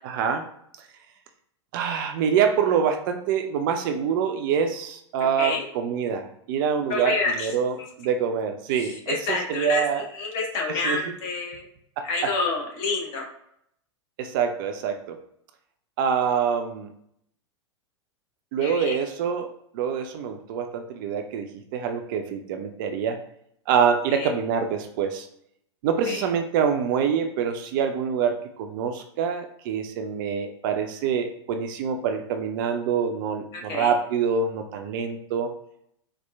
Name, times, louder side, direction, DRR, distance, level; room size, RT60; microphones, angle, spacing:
voice 1, 0.0-0.4 1.7-10.1 10.7-11.0 12.0-12.3 14.2-15.2 16.0-16.9 18.5-19.5 19.7-23.2 23.7-25.3 25.8-35.5, right 7 dB, 45° right, 6 dB, 0.4 m, -25 dB
voice 2, 6.9-7.5 8.8-11.6 12.0-13.2 18.6-19.0 24.1-24.3 26.1-26.2 33.5-33.9, left 3 dB, 45° left, -1 dB, 1.1 m, -28 dB
4.1 x 2.4 x 2.2 m, 0.73 s
figure-of-eight pair, 95°, 16 cm